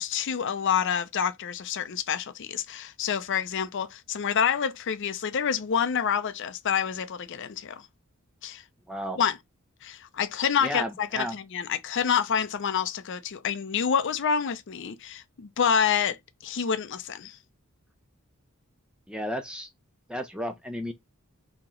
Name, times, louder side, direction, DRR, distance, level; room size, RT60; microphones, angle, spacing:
voice 1, 0.0-7.9 8.4-8.6 9.2-9.4 9.8-16.2 16.4-17.4, left 7 dB, 55° left, 0.5 m, -27 dB
voice 2, 8.9-9.2 10.6-11.4 19.1-19.7 20.1-20.9, equal, 5° right, 0.5 m, -33 dB
2.9 x 2.8 x 3.6 m
head